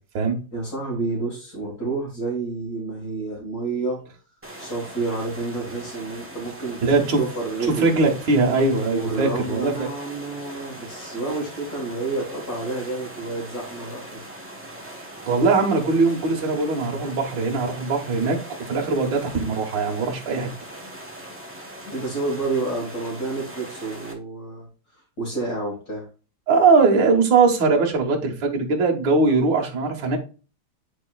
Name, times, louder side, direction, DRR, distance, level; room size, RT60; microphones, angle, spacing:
voice 1, 0.5-4.2 4.6-6.8 7.2-7.9 8.9-14.3 21.9-26.1, right 3 dB, 45° left, -5 dB, 2.4 m, -29 dB
sound 1, 4.4-24.1, right 1 dB, 10° right, 0.7 m, -40 dB
voice 2, 6.8-7.2 7.8-9.9 15.3-18.4 18.7-20.5 26.5-30.2, right 4 dB, 60° right, 0 dB, 2.1 m, -20 dB
9.8 x 4.4 x 2.4 m, 0.35 s
omnidirectional pair, 2.4 m